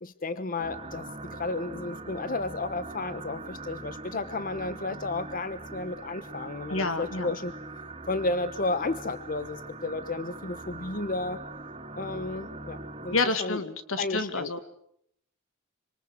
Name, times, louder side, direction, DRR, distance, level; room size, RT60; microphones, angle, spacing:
voice 1, 0.0-7.5 8.1-11.4 12.0-13.6 14.0-14.6, left 2 dB, 45° left, 13 dB, 1.1 m, -33 dB
sound 1, 0.6-13.2, right 2 dB, 30° right, 2.9 m, -42 dB
voice 2, 6.7-7.3 13.1-14.6, left 3 dB, 80° left, 11 dB, 2.3 m, -29 dB
26.5 x 26.5 x 8.1 m, 0.70 s
head